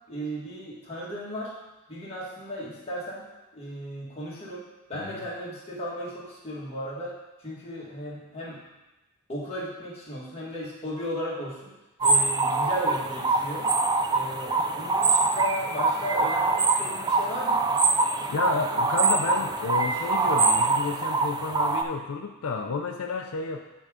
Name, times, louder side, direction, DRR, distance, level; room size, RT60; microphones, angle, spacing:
voice 1, 0.1-1.5 1.9-3.3 3.5-4.6 4.9-8.6 9.3-11.7 12.0-13.7 14.1-17.6, equal, 25° left, -6 dB, 1.8 m, -35 dB
sound 1, 12.0-21.8, right 3 dB, 20° right, 0.3 m, -24 dB
voice 2, 18.3-23.6, left 4 dB, 75° left, 4 dB, 0.4 m, -31 dB
9.1 x 3.6 x 4.9 m, 1.1 s
head